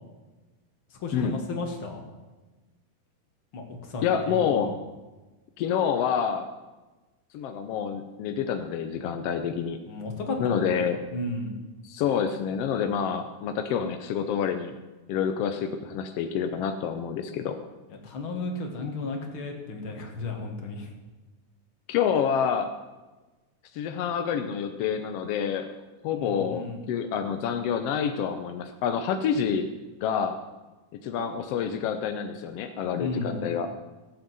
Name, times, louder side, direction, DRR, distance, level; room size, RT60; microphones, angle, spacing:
voice 1, 0.9-2.0 3.5-4.7 9.9-11.6 18.0-20.9 26.2-26.9 33.0-33.4, left 2 dB, 45° left, 2 dB, 2.5 m, -34 dB
voice 2, 4.0-4.7 5.6-6.5 7.3-9.8 10.4-11.0 11.8-14.7 15.1-17.6 21.9-22.7 23.7-25.7 26.0-29.7 30.0-30.4 31.0-33.7, left 7 dB, 75° left, 7 dB, 1.4 m, -27 dB
17.0 x 7.4 x 7.7 m, 1.2 s
omnidirectional pair, 3.7 m